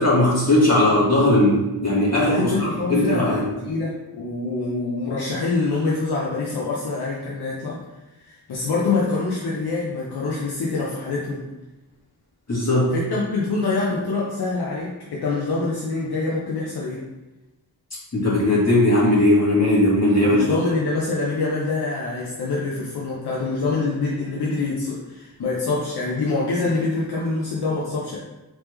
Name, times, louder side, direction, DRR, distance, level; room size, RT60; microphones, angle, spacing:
voice 1, 0.0-3.4 12.5-12.9 18.1-20.4, left 1 dB, 45° left, -7 dB, 1.4 m, -18 dB
voice 2, 2.3-7.8 8.2-11.5 12.9-17.1 20.2-28.2, left 3 dB, 85° left, -4 dB, 0.7 m, -25 dB
3.4 x 3.1 x 3.1 m, 1.0 s
wide cardioid pair, 60°, 38 cm